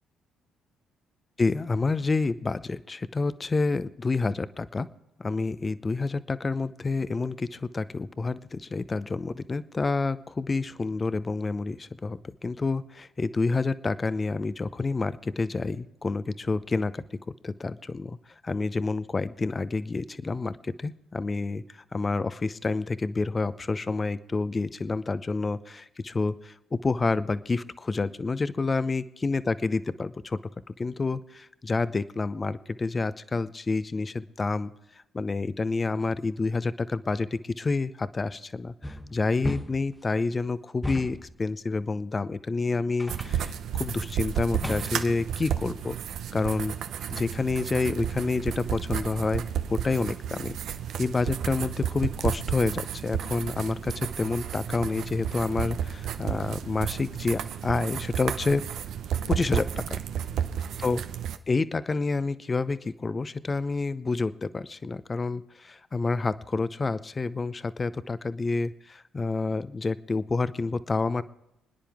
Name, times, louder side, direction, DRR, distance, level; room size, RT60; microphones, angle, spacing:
voice 1, 1.4-4.9 5.2-17.0 17.4-18.2 18.4-21.6 21.9-30.4 30.7-34.7 35.1-46.0 46.3-46.8 47.1-49.4 49.7-50.6 51.0-58.6 59.3-60.0 60.8-61.0 61.5-71.2, left 3 dB, 30° left, 15 dB, 0.7 m, -28 dB
sound 1, 38.8-40.0 40.8-41.4 43.0-43.5 44.6-45.2, left 1 dB, 10° left, 1.1 m, -35 dB
sound 2, 43.1-61.4, right 9 dB, 65° right, 0.8 m, -32 dB
27.5 x 10.0 x 3.5 m, 0.86 s
hypercardioid pair, 50°, 0 cm